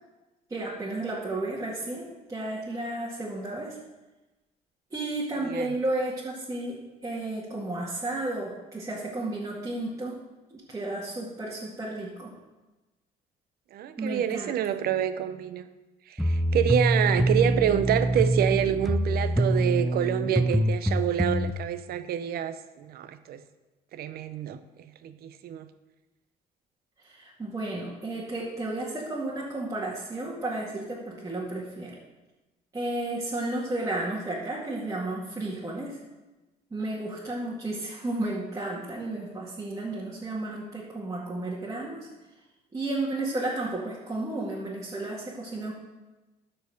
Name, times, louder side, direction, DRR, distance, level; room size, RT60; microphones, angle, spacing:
voice 1, 0.5-3.8 4.9-6.8 7.0-10.1 10.5-12.3 14.0-14.6 27.0-31.9 32.7-36.0 36.7-42.1 42.7-45.7, right 2 dB, 20° right, -6 dB, 2.1 m, -32 dB
voice 2, 13.7-15.7 16.1-23.4 23.9-25.7, right 10 dB, 65° right, 11 dB, 0.8 m, -27 dB
sound 1, 16.2-21.5, right 1 dB, ahead, 0.5 m, -25 dB
13.0 x 4.7 x 6.6 m, 1.1 s
cardioid pair, 110°, 17 cm